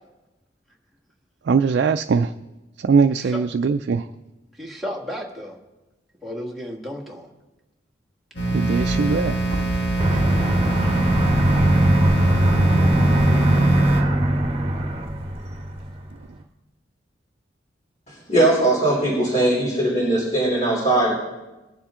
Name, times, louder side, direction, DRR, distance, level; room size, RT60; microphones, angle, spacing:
voice 1, 1.5-2.3 2.8-4.1 8.5-9.7, right 5 dB, 65° right, 8 dB, 0.4 m, -21 dB
voice 2, 4.6-5.5 6.2-7.3, equal, ahead, -3 dB, 1.6 m, -33 dB
sound 1, 8.3-14.0, right 2 dB, 65° left, 1.6 m, -24 dB
Aircraft, 10.0-16.1, right 1 dB, 35° right, 1.1 m, -20 dB
voice 3, 18.1-21.1, right 1 dB, 40° left, -7 dB, 3.4 m, -20 dB
20.0 x 7.2 x 3.7 m, 1.1 s
head